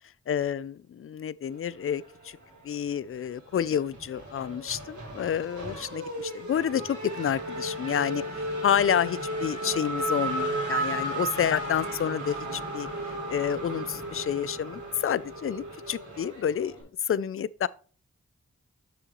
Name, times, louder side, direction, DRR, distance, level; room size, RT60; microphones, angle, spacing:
voice 1, 0.3-0.7 1.0-2.4 2.6-8.2 8.6-12.9 13.3-16.8 17.0-17.7, left 9 dB, 50° left, 0.4 m, -29 dB
Race car auto racing / Accelerating revving vroom, 1.8-2.8 3.1-16.8, right 1 dB, 90° right, 3.4 m, -34 dB
7.6 x 6.4 x 3.0 m
wide cardioid pair, 65°, 29 cm